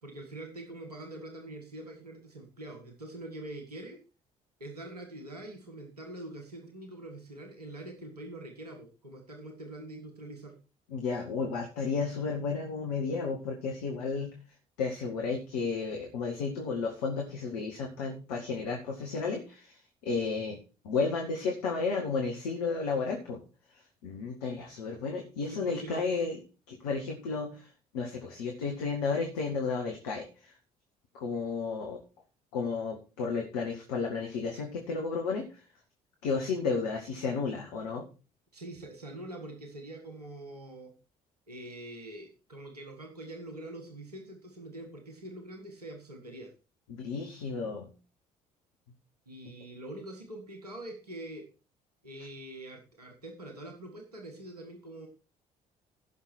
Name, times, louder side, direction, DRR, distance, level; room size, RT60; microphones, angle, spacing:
voice 1, 0.0-4.0 4.6-10.5 25.5-26.0 38.5-40.9 41.5-46.5 49.2-51.4 52.0-55.1, right 1 dB, 85° right, 3 dB, 1.7 m, -44 dB
voice 2, 10.9-14.3 14.8-20.6 20.8-23.4 23.7-26.4 26.7-30.5 31.1-32.0 32.5-35.6 36.2-38.0 46.9-47.9, left 4 dB, 70° left, 1 dB, 1.8 m, -33 dB
16.0 x 6.4 x 4.5 m, 0.34 s
figure-of-eight pair, 50°, 19 cm